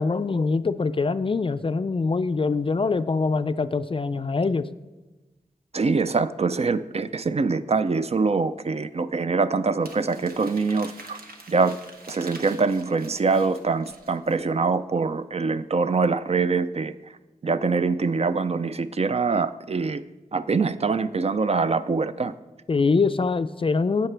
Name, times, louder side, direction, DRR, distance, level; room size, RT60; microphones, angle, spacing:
voice 1, 0.0-4.6 22.7-24.1, left 4 dB, 35° left, 12 dB, 0.3 m, -24 dB
voice 2, 5.7-11.2 11.5-11.8 12.1-16.9 17.4-20.0 20.3-22.3, right 4 dB, 45° right, 12 dB, 0.4 m, -24 dB
Crumpling crinkling, 9.8-14.4, right 2 dB, 80° right, 1.2 m, -46 dB
12.0 x 8.1 x 3.3 m, 1.1 s
wide cardioid pair, 85°, 15 cm